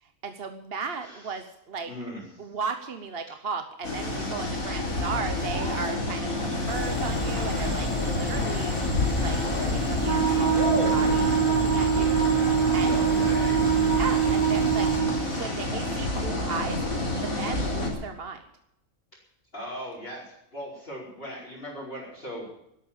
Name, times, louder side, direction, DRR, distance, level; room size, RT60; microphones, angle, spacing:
voice 1, 0.2-1.9 2.4-8.8 9.2-12.9 13.9-14.9 15.3-18.4, right 5 dB, 50° right, 7 dB, 1.2 m, -36 dB
voice 2, 1.0-1.3 1.8-2.5 4.1-4.5 12.7-14.0 19.5-22.5, equal, 45° left, -6 dB, 5.0 m, -39 dB
sound 1, 3.8-17.9, left 2 dB, 85° left, 4.6 m, -29 dB
sound 2, 6.7-15.0, left 2 dB, 20° left, 4.7 m, -32 dB
Wind instrument woodwind instrument, 10.0-15.2, right 9 dB, 80° right, 2.8 m, -24 dB
12.5 x 12.0 x 9.0 m, 0.80 s
omnidirectional pair, 1.4 m